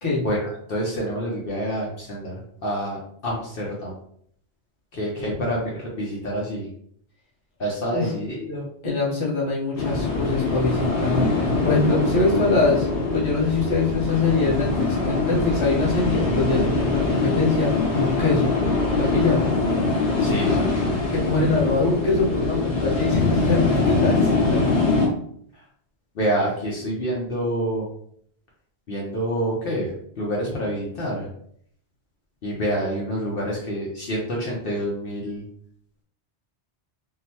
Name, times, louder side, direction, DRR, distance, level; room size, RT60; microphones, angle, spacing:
voice 1, 0.2-3.9 4.9-6.7 7.6-8.7 20.2-21.1 25.5-25.6 26.1-27.9 28.9-31.3 32.4-35.4, equal, 60° left, -4 dB, 0.9 m, -27 dB
voice 2, 8.8-12.9 13.1-18.5 18.9-19.4 21.1-24.2 24.5-24.6, left 3 dB, 30° left, -5 dB, 0.9 m, -23 dB
sound 1, 9.7-25.1, left 3 dB, 80° left, 1.4 m, -23 dB
3.7 x 2.1 x 2.9 m, 0.66 s
omnidirectional pair, 1.1 m